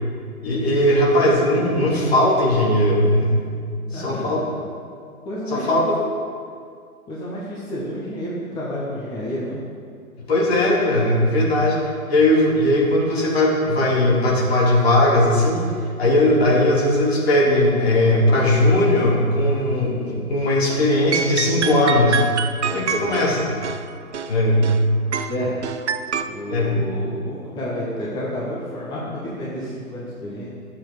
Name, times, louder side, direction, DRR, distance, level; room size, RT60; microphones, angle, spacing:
voice 1, 0.4-3.4 3.9-4.4 5.5-5.8 10.2-11.8 12.1-15.6 16.0-22.2 22.7-23.5 24.3-24.7 26.5-26.8, left 1 dB, 45° left, -3 dB, 2.7 m, -18 dB
voice 2, 3.6-4.3 5.2-5.8 7.1-9.6 25.3-26.0 26.2-30.5, equal, 10° left, -7 dB, 1.1 m, -30 dB
sound 1, 20.7-20.9 21.1-24.8 25.1-26.2, right 6 dB, 50° right, 0.6 m, -27 dB
12.0 x 7.2 x 5.0 m, 2.2 s
figure-of-eight pair, 125°, 44 cm